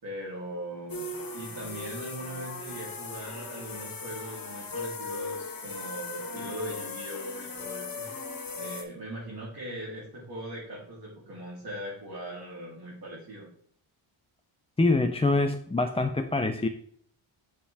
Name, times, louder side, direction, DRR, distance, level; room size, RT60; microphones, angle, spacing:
voice 1, 0.0-8.1 8.5-13.5, right 1 dB, 50° right, -7 dB, 3.3 m, -40 dB
sound 1, 0.9-8.8, left 3 dB, 45° left, 1.6 m, -38 dB
voice 2, 14.8-16.7, left 2 dB, 15° left, 6 dB, 0.4 m, -25 dB
7.3 x 7.0 x 3.4 m, 0.62 s
wide cardioid pair, 180°, 48 cm